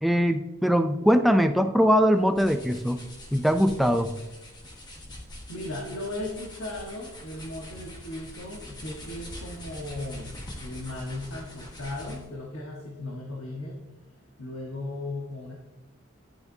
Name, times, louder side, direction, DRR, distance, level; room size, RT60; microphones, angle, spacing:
voice 1, 0.0-3.0 3.3-4.1, equal, ahead, 6 dB, 0.4 m, -21 dB
sound 1, 2.0-12.4, left 1 dB, 20° left, 1.3 m, -44 dB
voice 2, 5.5-13.7 14.4-15.5, left 1 dB, 80° left, -2 dB, 1.4 m, -36 dB
11.0 x 7.1 x 2.7 m, 1.0 s
head